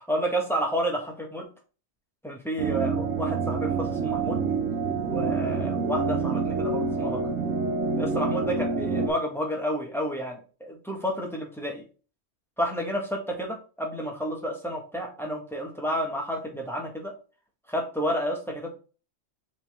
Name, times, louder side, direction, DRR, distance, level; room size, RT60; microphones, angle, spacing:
voice 1, 0.1-1.4 2.2-4.4 5.0-7.2 8.0-11.8 12.6-17.1 17.7-18.7, equal, ahead, 0 dB, 1.7 m, -30 dB
sound 1, 2.6-9.1, right 4 dB, 85° right, 1.4 m, -27 dB
6.0 x 4.4 x 3.6 m, 0.35 s
omnidirectional pair, 1.3 m